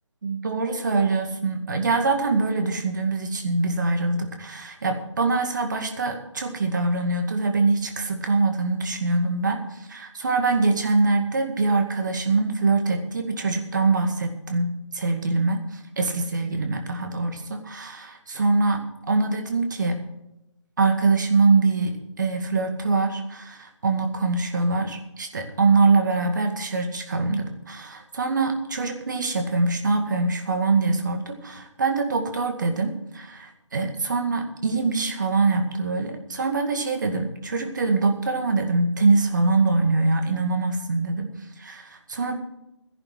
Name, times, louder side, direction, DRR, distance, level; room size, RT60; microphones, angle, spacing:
voice 1, 0.2-15.6 16.0-20.0 20.8-41.3 41.6-42.4, right 3 dB, 40° right, 5 dB, 2.0 m, -24 dB
13.5 x 11.0 x 6.0 m, 0.86 s
figure-of-eight pair, 160°, 16 cm